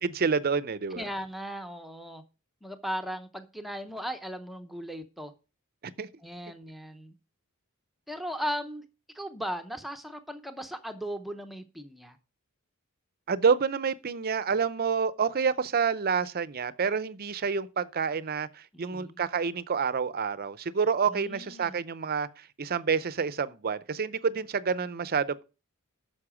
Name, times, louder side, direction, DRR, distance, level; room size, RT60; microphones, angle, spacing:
voice 1, 0.0-1.0 6.0-6.1 13.3-25.4, right 5 dB, 45° right, 0.6 m, -28 dB
voice 2, 1.0-2.2 2.6-5.3 6.2-7.1 8.1-8.8 9.1-12.2 18.7-19.2 21.1-21.8, equal, ahead, 0.7 m, -37 dB
9.7 x 6.5 x 5.0 m
head